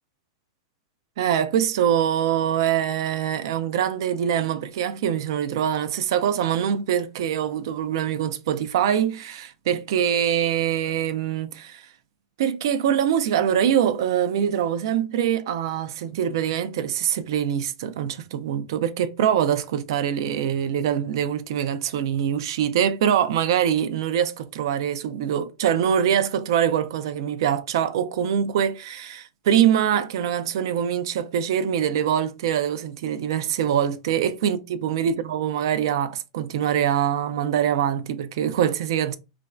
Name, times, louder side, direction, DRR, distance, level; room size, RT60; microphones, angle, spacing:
voice 1, 1.2-11.8 12.4-39.2, right 9 dB, 65° right, 0.4 m, -24 dB
2.5 x 2.2 x 3.1 m
supercardioid pair, 145°, 3 cm